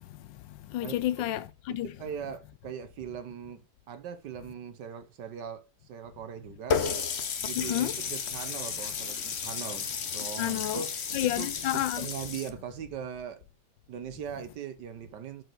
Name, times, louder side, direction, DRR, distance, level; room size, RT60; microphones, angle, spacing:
voice 1, 0.0-1.9 7.6-8.0 10.4-10.8 11.1-12.1, left 13 dB, 75° left, 1.3 m, -31 dB
voice 2, 1.7-3.6 3.9-6.8 7.4-9.9 10.1-10.9 11.2-13.4 13.9-15.4, right 8 dB, 65° right, 1.5 m, -40 dB
Water tap faucet, 6.7-12.5, left 6 dB, 45° left, 0.9 m, -33 dB
9.1 x 4.8 x 6.1 m
omnidirectional pair, 2.1 m